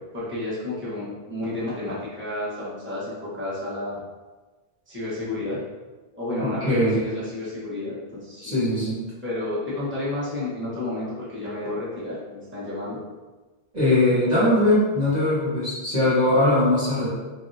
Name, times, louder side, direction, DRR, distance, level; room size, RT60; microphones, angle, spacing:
voice 1, 0.1-4.0 4.9-5.6 6.1-8.6 9.2-13.0 14.1-14.2, left 2 dB, 10° right, -10 dB, 1.0 m, -31 dB
voice 2, 6.4-7.0 8.4-9.0 13.7-17.1, left 1 dB, 45° right, -11 dB, 1.0 m, -21 dB
2.9 x 2.7 x 2.6 m, 1.2 s
omnidirectional pair, 1.1 m